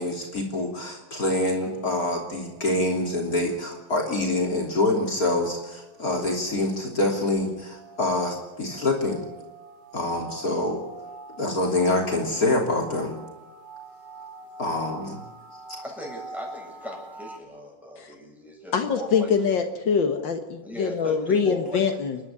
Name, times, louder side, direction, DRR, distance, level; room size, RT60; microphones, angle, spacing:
voice 1, 0.0-9.2 9.9-10.8 11.4-13.2 14.6-15.2, left 2 dB, 50° left, 1 dB, 3.7 m, -26 dB
sound 1, 1.2-17.4, right 2 dB, 70° right, 4.2 m, -46 dB
voice 2, 15.8-19.3 20.6-21.8, left 1 dB, ahead, -1 dB, 7.4 m, -38 dB
voice 3, 18.7-22.2, left 6 dB, 75° left, 6 dB, 2.2 m, -24 dB
29.0 x 11.5 x 9.9 m, 1.1 s
omnidirectional pair, 2.1 m